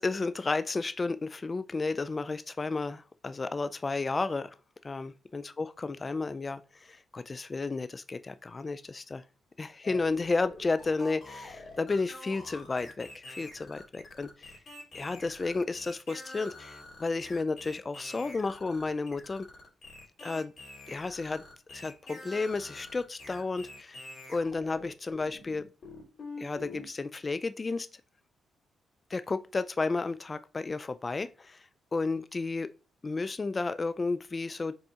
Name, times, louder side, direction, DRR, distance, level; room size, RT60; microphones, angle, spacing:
voice 1, 0.0-4.5 4.8-9.2 9.6-14.6 14.9-19.5 20.2-20.5 20.9-21.4 21.7-24.0 24.3-25.7 26.4-27.9 29.1-32.7 33.0-34.8, left 3 dB, 35° left, 0.4 m, -32 dB
sound 1, 9.8-26.9, left 2 dB, 60° left, 2.7 m, -46 dB
5.3 x 4.1 x 2.4 m
supercardioid pair, 55°, 0 cm